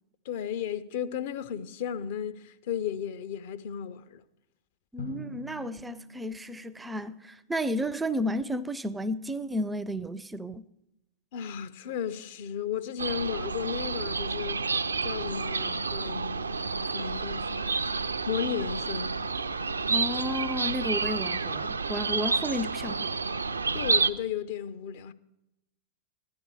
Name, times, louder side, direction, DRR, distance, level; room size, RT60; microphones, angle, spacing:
voice 1, 0.2-4.2 11.3-14.7 15.0-17.7 18.3-19.3 23.7-25.1, left 8 dB, 55° left, 0.7 m, -34 dB
voice 2, 4.9-10.7 19.9-23.1, equal, 10° right, 0.5 m, -32 dB
Drum, 5.0-7.6, left 2 dB, 70° left, 2.6 m, -44 dB
sound 1, 13.0-24.1, right 4 dB, 75° right, 0.5 m, -30 dB
15.0 x 11.5 x 4.9 m
figure-of-eight pair, 90°, 0 cm